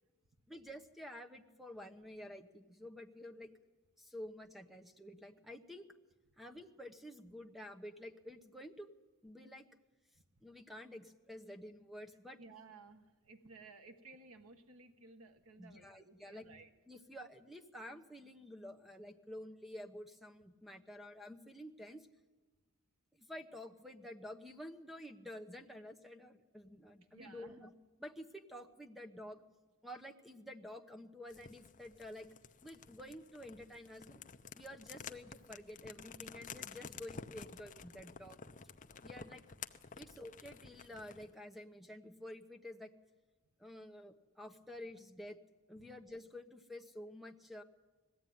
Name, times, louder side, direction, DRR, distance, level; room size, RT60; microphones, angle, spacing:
voice 1, 0.5-3.5 4.0-5.9 6.4-8.9 9.2-9.7 10.4-12.4 15.6-16.5 16.9-22.1 23.1-27.7 28.0-29.4 29.8-32.3 32.6-34.2 34.5-38.4 39.0-39.4 40.0-42.9 43.6-45.4 45.7-47.6, left 1 dB, ahead, 5 dB, 1.0 m, -50 dB
voice 2, 12.4-16.7 27.1-27.6, right 3 dB, 70° right, 6 dB, 1.3 m, -57 dB
sound 1, 31.3-41.3, left 6 dB, 35° left, 0.7 m, -52 dB
20.0 x 15.0 x 9.4 m, 1.2 s
head